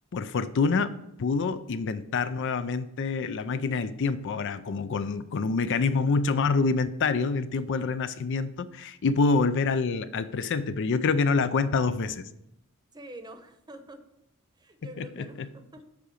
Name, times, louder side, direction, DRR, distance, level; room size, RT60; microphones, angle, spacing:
voice 1, 0.1-0.9 1.2-12.3 15.0-15.5, left 4 dB, 55° left, 12 dB, 0.4 m, -26 dB
voice 2, 12.9-14.0 14.6-15.8, right 1 dB, 20° right, 7 dB, 0.8 m, -46 dB
8.2 x 5.0 x 6.4 m, 0.83 s
head